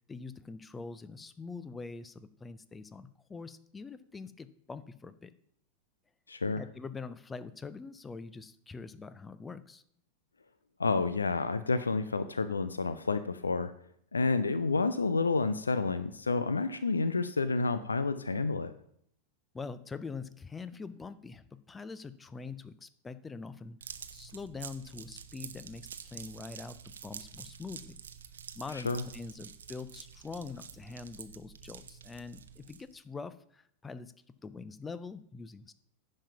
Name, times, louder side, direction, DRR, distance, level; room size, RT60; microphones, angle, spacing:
voice 1, 0.1-5.3 6.6-9.8 19.5-23.8 24.1-28.0 28.6-34.1 34.4-35.7, left 4 dB, 15° left, 14 dB, 0.5 m, -44 dB
voice 2, 6.3-6.6 10.8-13.7 14.1-18.7 28.7-29.0, left 3 dB, 75° left, 12 dB, 0.5 m, -29 dB
sound 1, 23.8-33.0, right 7 dB, 65° right, 0.7 m, -48 dB
10.0 x 5.5 x 5.8 m, 0.68 s
figure-of-eight pair, 90°, 0 cm